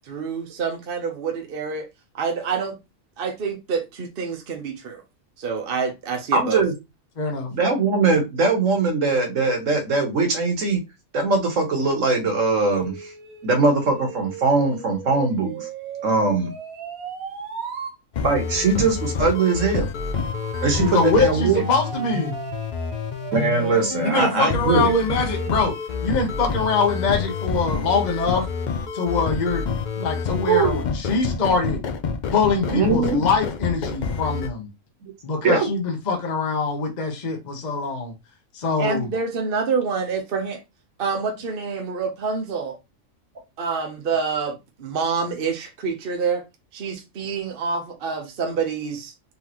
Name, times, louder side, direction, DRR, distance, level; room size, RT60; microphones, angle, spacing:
voice 1, 0.1-1.9 2.1-2.8 3.2-5.0 5.4-6.6 38.8-40.6 41.0-42.7 43.6-46.4 46.7-49.1, right 5 dB, 45° right, 1.0 m, -27 dB
voice 2, 6.3-6.7 7.5-10.8 11.1-13.1 13.4-15.7 16.0-16.5 18.2-19.9 20.6-21.6 23.3-24.9 30.5-30.8 32.7-33.2 35.4-35.7, right 3 dB, 65° right, 1.5 m, -21 dB
voice 3, 7.2-7.5 20.8-22.3 24.0-25.7 26.0-28.5 28.9-29.6 30.0-31.8 32.3-34.7 35.2-38.1 38.5-39.1, left 4 dB, 35° left, 0.9 m, -23 dB
sound 1, 12.7-18.0 20.2-26.0, right 6 dB, 85° right, 1.4 m, -37 dB
sound 2, 18.1-34.5, left 5 dB, 75° left, 0.4 m, -28 dB
4.1 x 3.6 x 2.9 m
omnidirectional pair, 1.5 m